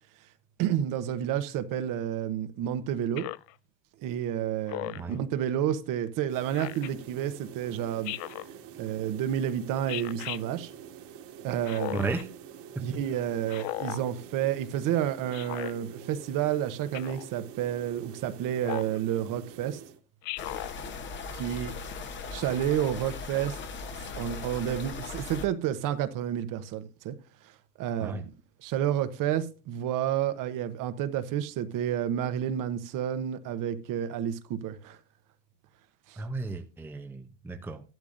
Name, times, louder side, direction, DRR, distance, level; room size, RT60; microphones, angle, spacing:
voice 1, 0.6-3.3 4.0-8.1 8.8-10.7 11.4-12.1 12.8-19.8 21.3-21.7 22.3-23.6 24.2-27.1 27.8-28.2 28.6-35.0 36.1-36.2, right 10 dB, 40° right, 1.0 m, -30 dB
Speech synthesizer, 3.2-3.5 4.7-5.1 6.5-6.9 8.0-8.5 9.9-10.4 11.6-12.2 13.5-14.0 15.3-15.7 16.9-17.3 18.6-19.0 20.2-20.7, left 19 dB, 55° left, 0.5 m, -36 dB
sound 1, 6.3-20.0, right 8 dB, 60° right, 2.4 m, -47 dB
voice 2, 11.9-12.3 28.0-28.2 36.2-37.8, right 3 dB, 5° right, 0.7 m, -34 dB
sound 2, 20.4-25.5, left 4 dB, 25° left, 1.0 m, -38 dB
14.0 x 12.0 x 2.6 m
supercardioid pair, 135°, 48 cm